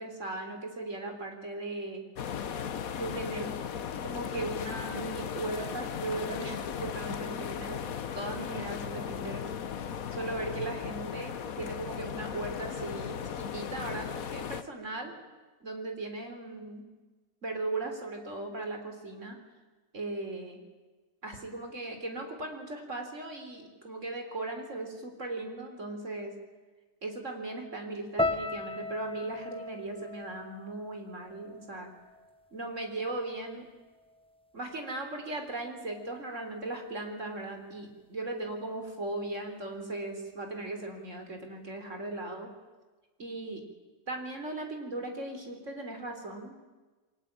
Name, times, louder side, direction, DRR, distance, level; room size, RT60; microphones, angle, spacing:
voice 1, 0.0-2.0 2.9-3.5 4.0-7.9 8.1-9.5 10.1-15.1 15.6-16.9 17.4-19.4 19.9-20.6 21.2-26.3 27.0-31.9 32.5-33.7 34.5-42.5 43.2-43.6 44.1-46.6, right 2 dB, 45° right, 4 dB, 4.1 m, -38 dB
sound 1, 2.2-14.6, left 8 dB, 60° left, 1.4 m, -37 dB
sound 2, 28.2-32.4 32.6-33.4 34.0-34.2, left 2 dB, 5° left, 0.9 m, -37 dB
29.0 x 22.5 x 8.9 m, 1.3 s
omnidirectional pair, 1.8 m